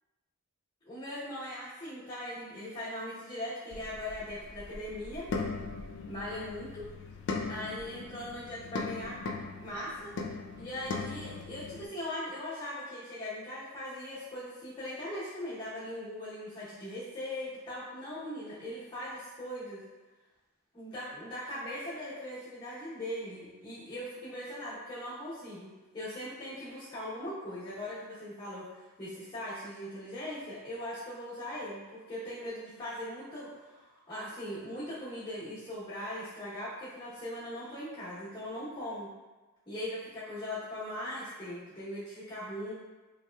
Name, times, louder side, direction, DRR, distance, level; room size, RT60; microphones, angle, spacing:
voice 1, 0.8-5.3 6.1-6.8 7.5-9.2 9.6-10.1 10.5-19.8 20.7-39.1 39.7-42.7, left 1 dB, 20° left, -15 dB, 0.8 m, -40 dB
sound 1, 3.7-11.9, left 4 dB, 55° left, 0.3 m, -39 dB
2.9 x 2.8 x 2.2 m, 1.2 s
head